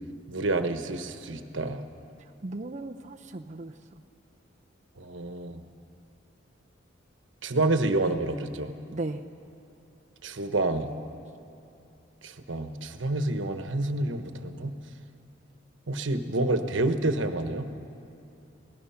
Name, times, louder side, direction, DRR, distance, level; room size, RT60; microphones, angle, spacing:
voice 1, 0.3-1.8 5.0-5.6 7.4-8.7 10.2-10.9 12.2-14.7 15.9-17.7, right 2 dB, 80° right, 8 dB, 1.2 m, -28 dB
voice 2, 2.4-3.7 8.9-9.2, right 2 dB, 40° right, 3 dB, 0.6 m, -36 dB
27.0 x 18.5 x 5.8 m, 2.7 s
head